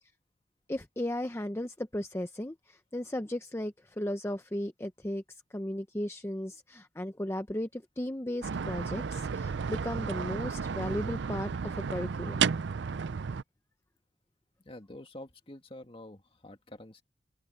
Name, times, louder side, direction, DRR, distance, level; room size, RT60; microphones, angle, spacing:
voice 1, 0.7-12.5, left 1 dB, 15° left, 0.7 m, -36 dB
sound 1, 8.4-13.4, right 6 dB, 75° right, 0.5 m, -33 dB
voice 2, 14.6-17.0, left 1 dB, 30° left, 2.0 m, -47 dB
head